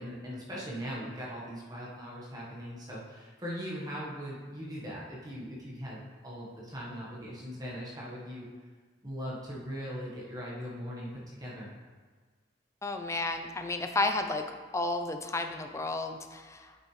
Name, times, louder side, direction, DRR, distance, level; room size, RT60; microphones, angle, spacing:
voice 1, 0.0-8.4 9.0-11.7, equal, 20° right, -6 dB, 1.3 m, -40 dB
voice 2, 12.8-16.8, left 2 dB, 15° left, 6 dB, 0.5 m, -32 dB
8.6 x 5.9 x 3.2 m, 1.4 s
head